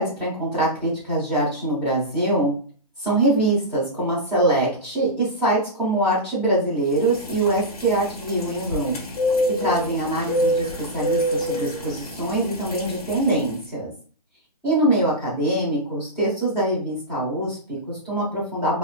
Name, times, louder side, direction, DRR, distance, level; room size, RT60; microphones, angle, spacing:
voice 1, 0.0-2.5 3.0-9.0 9.6-13.9 14.6-18.8, right 1 dB, 5° left, -12 dB, 0.9 m, -23 dB
sound 1, 6.9-13.5, equal, 60° left, 1.0 m, -27 dB
2.9 x 2.1 x 2.3 m, 0.42 s
hypercardioid pair, 170°, 21 cm